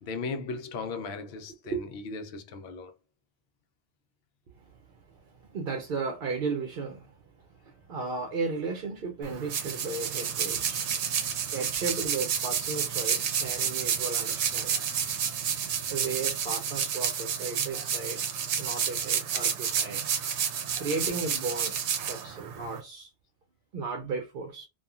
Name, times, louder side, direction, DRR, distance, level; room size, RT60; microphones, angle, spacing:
voice 1, 0.0-2.9 22.1-22.3, left 4 dB, 70° left, 0.8 m, -37 dB
voice 2, 5.3-7.1 7.6-14.8 15.9-18.2 18.6-20.1 20.8-23.1 23.7-24.7, right 4 dB, 60° right, 0.7 m, -35 dB
sound 1, 9.2-22.8, right 8 dB, 85° right, 0.9 m, -30 dB
2.8 x 2.3 x 2.3 m
omnidirectional pair, 1.1 m